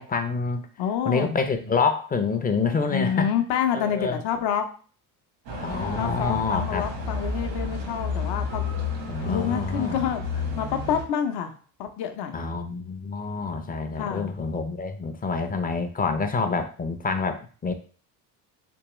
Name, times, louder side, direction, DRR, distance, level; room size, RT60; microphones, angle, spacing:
voice 1, 0.0-0.7 1.1-3.3 3.7-4.2 5.6-6.8 9.1-10.0 12.3-17.7, left 4 dB, 20° left, 7 dB, 0.5 m, -27 dB
voice 2, 0.8-1.4 2.9-4.7 6.0-8.6 9.2-11.5 11.8-12.4 14.0-14.3, left 8 dB, 60° left, 6 dB, 0.7 m, -28 dB
sound 1, 5.5-11.0, left 3 dB, 80° right, 1.3 m, -31 dB
3.5 x 3.0 x 3.0 m, 0.41 s
supercardioid pair, 80°, 46 cm